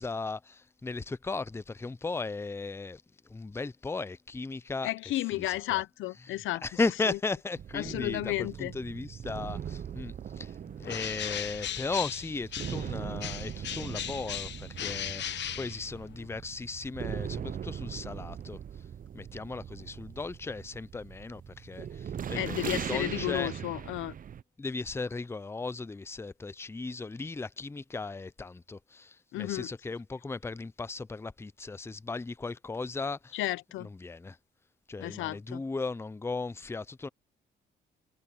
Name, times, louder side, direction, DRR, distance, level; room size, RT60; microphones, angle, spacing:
voice 1, 0.0-3.0 3.3-4.9 5.3-5.8 6.6-18.6 19.1-23.5 24.6-33.4 33.8-34.4 34.9-37.1, left 3 dB, 10° left, 0.5 m, -36 dB
voice 2, 4.8-6.8 7.1-7.2 7.7-8.7 22.4-24.1 29.3-29.7 33.3-33.9 35.0-35.6, left 16 dB, 85° left, 0.8 m, -33 dB
sound 1, 7.6-24.4, right 8 dB, 45° right, 0.7 m, -40 dB
Bird, 10.8-12.9 13.2-16.3, left 10 dB, 65° left, 1.0 m, -37 dB
cardioid pair, 90°, 20 cm